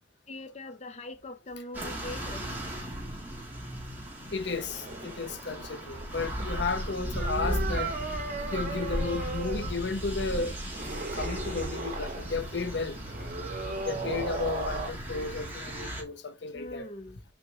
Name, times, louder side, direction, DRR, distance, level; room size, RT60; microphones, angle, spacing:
voice 1, 0.3-2.5 16.5-17.2, left 2 dB, 40° left, 0.7 m, -42 dB
sound 1, 1.7-16.0, equal, 10° right, 3.0 m, -36 dB
voice 2, 4.3-7.9 8.5-10.5 11.1-13.0 13.8-16.9, left 4 dB, 70° left, 0.9 m, -33 dB
sound 2, 4.5-14.9, right 3 dB, 50° right, 2.6 m, -38 dB
6.1 x 5.1 x 3.1 m
head